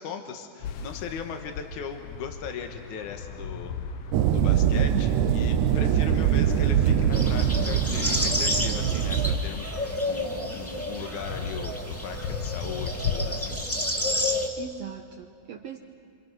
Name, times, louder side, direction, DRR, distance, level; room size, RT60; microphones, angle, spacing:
voice 1, 0.0-3.8 4.3-13.9, left 6 dB, 80° left, 6 dB, 2.8 m, -38 dB
sound 1, 0.6-13.9, left 6 dB, 65° left, 1.6 m, -38 dB
sound 2, 4.1-9.4, right 9 dB, 85° right, 2.3 m, -23 dB
voice 2, 6.2-6.6 14.6-15.8, right 9 dB, 65° right, 3 dB, 1.9 m, -40 dB
sound 3, 7.1-14.5, left 1 dB, 5° left, 1.9 m, -30 dB
28.0 x 27.0 x 6.3 m, 2.7 s
omnidirectional pair, 3.5 m